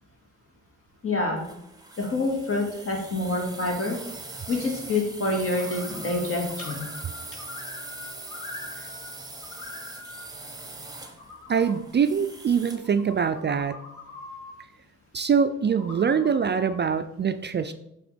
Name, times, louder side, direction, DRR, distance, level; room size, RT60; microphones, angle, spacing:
voice 1, 1.0-1.4 2.0-4.0 4.5-6.9, left 2 dB, 45° left, -1 dB, 2.6 m, -27 dB
sound 1, 1.4-12.9, right 2 dB, 10° right, 1.1 m, -41 dB
sound 2, 5.5-6.2 6.5-9.1 9.4-10.3 10.8-11.8 12.7-14.5 15.7-16.8, left 3 dB, 80° left, 1.7 m, -43 dB
voice 2, 11.5-13.8 15.1-17.7, right 6 dB, 35° right, 10 dB, 0.4 m, -24 dB
7.6 x 3.6 x 5.1 m, 0.82 s
supercardioid pair, 55°, 30 cm